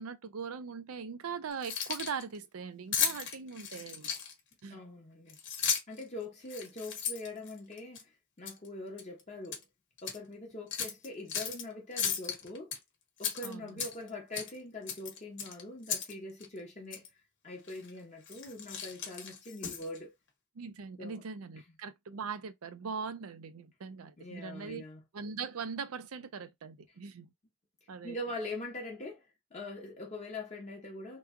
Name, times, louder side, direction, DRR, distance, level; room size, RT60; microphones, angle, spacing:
voice 1, 0.0-4.1 4.6-4.8 13.4-13.8 20.6-24.8 25.1-27.3 27.9-28.2, right 5 dB, 90° right, 0.5 m, -41 dB
Keys jangling, 1.5-2.2 2.9-4.5 5.3-6.0 6.5-8.0 8.5-8.7 9.0-9.6 10.0-10.2 10.7-11.6 12.0-12.8 13.2-14.1 14.3-14.6 14.9-16.1 16.4-16.5 16.9-17.1 17.7-17.9 18.2-20.0, left 7 dB, 55° left, 1.1 m, -35 dB
voice 2, 4.7-5.4 5.9-8.1 8.4-9.6 10.0-12.7 13.2-17.1 17.4-20.1 21.0-21.2 24.2-25.0 28.0-31.2, left 2 dB, 35° left, 0.9 m, -43 dB
3.0 x 2.3 x 3.6 m
head